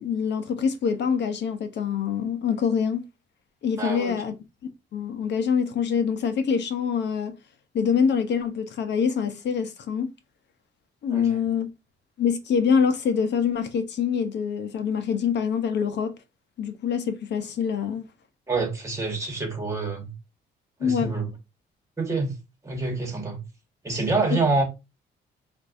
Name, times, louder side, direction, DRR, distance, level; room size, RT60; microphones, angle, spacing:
voice 1, 0.0-3.0 3.6-4.3 4.9-7.3 7.7-10.1 11.0-11.7 12.2-16.1 16.6-18.1 20.8-21.1 24.3-24.4, left 7 dB, 60° left, 0.8 m, -25 dB
voice 2, 3.8-4.1 11.1-11.3 18.5-20.1 20.8-21.3 22.0-22.3 22.6-23.4 23.8-24.6, right 3 dB, 15° right, 1.7 m, -26 dB
4.4 x 2.6 x 2.6 m
cardioid pair, 90°, 20 cm